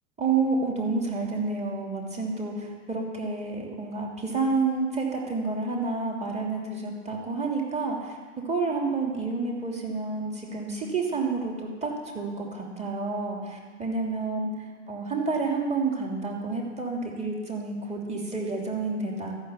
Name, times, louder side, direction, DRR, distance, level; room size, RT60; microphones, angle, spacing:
voice 1, 0.2-8.2 8.4-14.5 14.9-19.4, right 3 dB, 20° right, -2 dB, 3.0 m, -29 dB
13.5 x 6.8 x 8.5 m, 1.5 s
hypercardioid pair, 100°, 38 cm